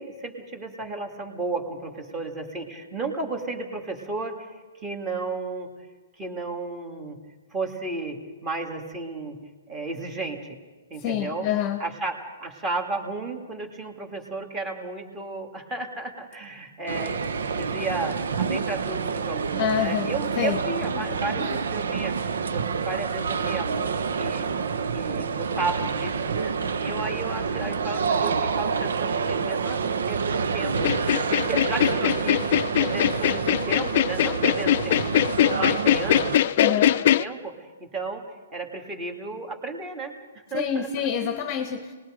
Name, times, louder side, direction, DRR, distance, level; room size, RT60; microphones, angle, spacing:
voice 1, 0.0-4.4 4.8-5.7 6.2-7.2 7.5-9.4 9.7-10.6 10.9-11.5 11.8-22.1 22.5-24.4 24.9-26.5 26.8-30.9 31.2-36.9 37.2-38.2 38.5-40.1 40.5-41.1, right 3 dB, 15° right, 3 dB, 2.3 m, -33 dB
voice 2, 11.0-11.8 19.6-20.1 20.4-20.6 21.1-21.6 36.6-37.0 40.5-41.9, left 9 dB, 25° left, 8 dB, 1.1 m, -27 dB
sound 1, 16.9-36.4, right 5 dB, 75° right, 1.1 m, -28 dB
sound 2, 30.8-37.2, left 12 dB, 40° left, 0.6 m, -22 dB
29.5 x 20.0 x 5.1 m, 1.3 s
hypercardioid pair, 165°, 0 cm